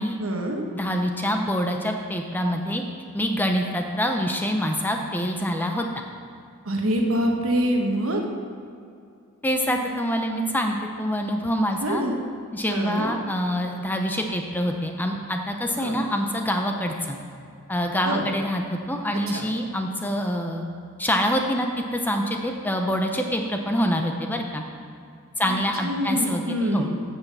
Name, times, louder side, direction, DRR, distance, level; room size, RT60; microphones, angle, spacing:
voice 1, 0.2-0.6 6.6-8.2 11.8-12.1 12.7-13.1 15.8-16.0 18.0-18.2 19.3-19.4 25.4-25.6 25.8-26.9, equal, 70° right, 2 dB, 1.3 m, -25 dB
voice 2, 0.7-2.8 3.1-5.9 9.4-12.0 12.5-17.2 17.7-20.7 21.0-24.6 25.4-26.9, equal, 10° left, 3 dB, 0.6 m, -25 dB
9.9 x 5.7 x 7.1 m, 2.4 s
head